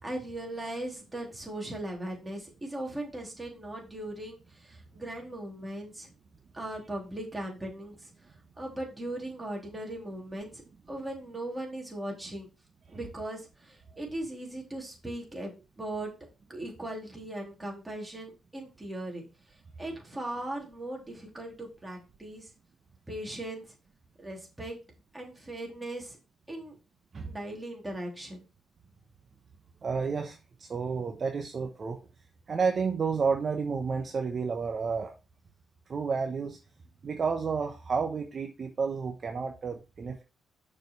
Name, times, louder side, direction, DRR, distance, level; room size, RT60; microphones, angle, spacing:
voice 1, 0.0-6.1 6.5-8.1 8.6-10.5 10.9-12.5 12.9-16.1 16.5-19.3 19.8-22.5 23.1-23.6 24.2-24.8 25.1-26.2 26.5-26.7 27.3-28.4, right 1 dB, 15° right, -1 dB, 3.4 m, -38 dB
voice 2, 29.8-32.0 32.5-35.1 35.9-36.6 37.0-40.2, right 5 dB, 40° right, 4 dB, 0.9 m, -31 dB
6.6 x 5.0 x 4.7 m, 0.29 s
cardioid pair, 90°, 0 cm